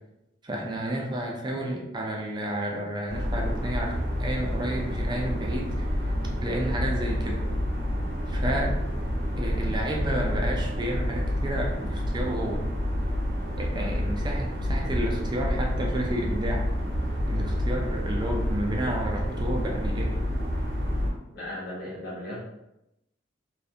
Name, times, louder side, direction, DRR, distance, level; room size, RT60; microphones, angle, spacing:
voice 1, 0.4-6.1 6.4-7.4 8.3-8.7 9.4-12.6 13.6-16.7 17.3-20.2, right 1 dB, 25° right, -1 dB, 0.4 m, -31 dB
sound 1, 3.1-21.1, equal, 65° right, 0.7 m, -28 dB
voice 2, 21.3-22.4, left 1 dB, 60° left, -7 dB, 1.1 m, -36 dB
2.5 x 2.4 x 2.7 m, 0.88 s
head